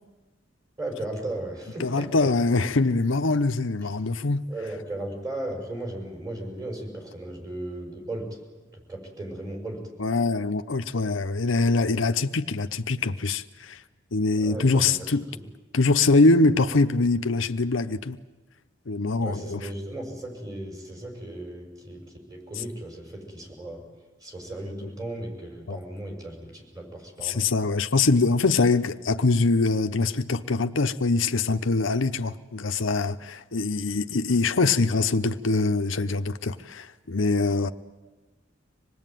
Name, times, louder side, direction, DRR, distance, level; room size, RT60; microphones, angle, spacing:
voice 1, 0.8-2.3 4.5-8.4 8.7-9.8 14.3-15.4 19.2-23.8 24.2-27.4, right 1 dB, 20° right, 6.3 m, -36 dB
voice 2, 1.8-4.4 10.0-13.8 14.1-15.3 15.7-18.2 18.9-19.6 24.8-24.9 25.7-25.8 27.2-37.7, left 3 dB, 85° left, 0.9 m, -23 dB
26.0 x 19.5 x 9.2 m
head